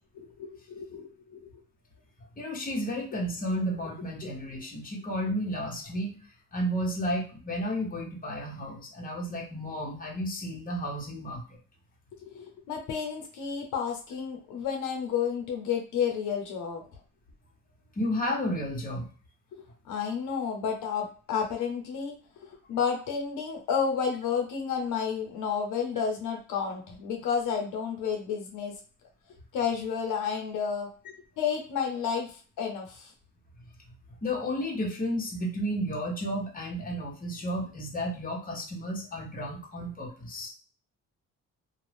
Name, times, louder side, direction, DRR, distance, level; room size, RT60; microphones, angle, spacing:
voice 1, 0.2-1.5 12.2-16.8 19.5-28.7 29.5-33.1, left 7 dB, 80° left, 2 dB, 0.8 m, -31 dB
voice 2, 2.4-6.1 6.5-11.6 18.0-19.1 34.2-40.5, equal, 30° left, -2 dB, 1.1 m, -32 dB
2.6 x 2.3 x 3.4 m, 0.39 s
cardioid pair, 90°, 30 cm